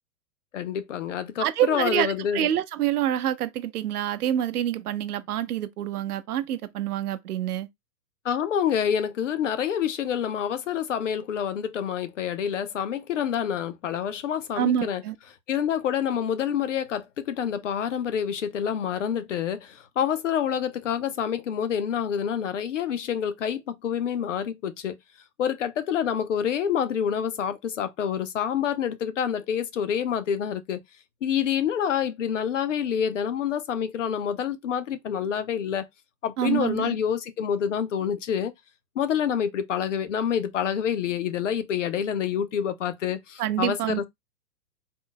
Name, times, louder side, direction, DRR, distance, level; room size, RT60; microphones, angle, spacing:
voice 1, 0.5-2.5 8.2-15.0 15.5-25.0 25.4-30.8 31.2-35.9 36.2-38.5 39.0-44.0, left 8 dB, 50° left, 0.6 m, -27 dB
voice 2, 1.4-7.7 14.5-15.2 36.4-37.0 43.4-44.0, right 11 dB, 65° right, 0.7 m, -27 dB
3.9 x 2.1 x 3.7 m
hypercardioid pair, 170°, 48 cm